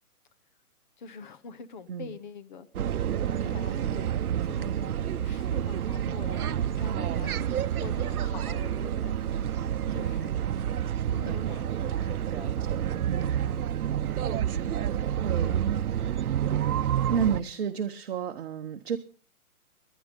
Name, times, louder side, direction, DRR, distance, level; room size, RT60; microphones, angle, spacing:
voice 1, 1.0-7.5 7.8-10.4 11.1-12.6 15.4-15.6, left 5 dB, 30° left, 0.9 m, -45 dB
sound 1, 2.7-17.4, right 10 dB, 75° right, 0.8 m, -29 dB
voice 2, 10.0-10.4 11.2-11.4 12.3-12.8 13.0-13.3 15.2-15.5 17.1-19.0, right 7 dB, 45° right, 1.1 m, -31 dB
20.5 x 10.5 x 5.3 m
hypercardioid pair, 165°, 45 cm